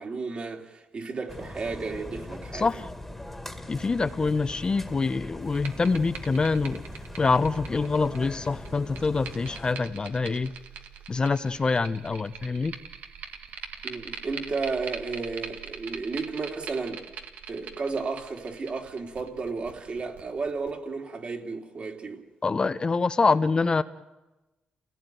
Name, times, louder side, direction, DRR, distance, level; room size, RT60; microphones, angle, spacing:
voice 1, 0.0-2.8 13.8-17.0 17.5-22.2, right 4 dB, 45° right, 2.9 m, -33 dB
sound 1, 1.3-9.7, left 1 dB, 5° left, 2.0 m, -41 dB
voice 2, 2.5-2.9 3.7-6.8 7.2-10.5 11.1-12.7 22.4-23.8, left 4 dB, 30° left, 0.8 m, -25 dB
sound 2, 5.4-20.7, right 6 dB, 80° right, 2.0 m, -43 dB
29.0 x 17.0 x 9.3 m
cardioid pair, 100°, 3 cm